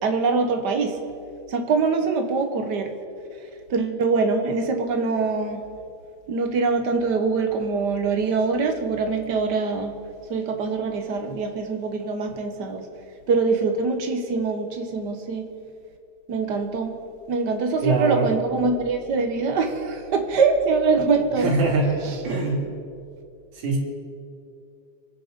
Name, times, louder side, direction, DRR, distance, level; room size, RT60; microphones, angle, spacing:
voice 1, 0.0-1.0 1.5-2.9 3.7-5.6 6.3-10.0 10.3-12.8 13.3-15.5 16.3-16.9 17.3-21.5 22.0-22.2, right 4 dB, 55° right, 5 dB, 1.1 m, -23 dB
voice 2, 17.8-18.3 21.4-21.9 22.2-22.6 23.5-23.8, right 3 dB, 80° right, -5 dB, 3.9 m, -22 dB
25.0 x 9.2 x 5.1 m, 2.4 s
omnidirectional pair, 3.4 m